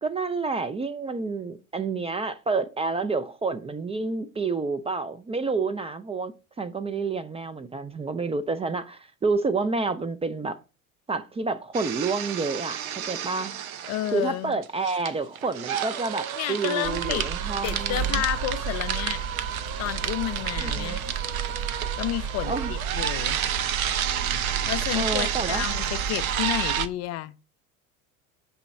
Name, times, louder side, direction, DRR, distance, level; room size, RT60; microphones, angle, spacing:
voice 1, 0.0-6.3 6.6-10.6 11.1-12.8 13.1-13.5 14.1-18.2 20.6-21.0 22.5-22.7 24.9-25.6, right 4 dB, 15° right, 0.4 m, -29 dB
sound 1, 11.7-14.3 14.6-26.9, right 9 dB, 85° right, 0.6 m, -30 dB
voice 2, 13.9-14.6 16.4-17.3 17.6-19.2 19.8-21.0 22.0-23.4 24.7-27.3, left 16 dB, 40° left, 0.4 m, -31 dB
sound 2, 16.8-26.9, right 6 dB, 55° right, 0.9 m, -33 dB
6.7 x 3.0 x 5.2 m
hypercardioid pair, 75°, 41 cm